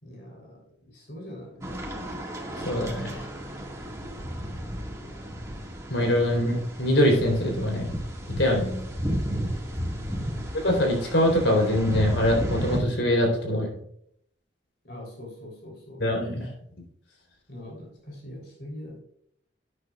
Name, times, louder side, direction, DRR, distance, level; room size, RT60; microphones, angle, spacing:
voice 1, 0.0-1.8 9.7-10.6 14.8-16.1 17.5-19.0, left 1 dB, 60° left, -1 dB, 3.5 m, -43 dB
sound 1, 1.6-12.8, equal, 15° right, 1.9 m, -33 dB
voice 2, 2.6-3.2 5.9-7.9 8.3-8.9 10.5-13.8 16.0-16.5, left 1 dB, 80° left, 1 dB, 3.8 m, -23 dB
12.0 x 9.6 x 2.4 m, 0.70 s
head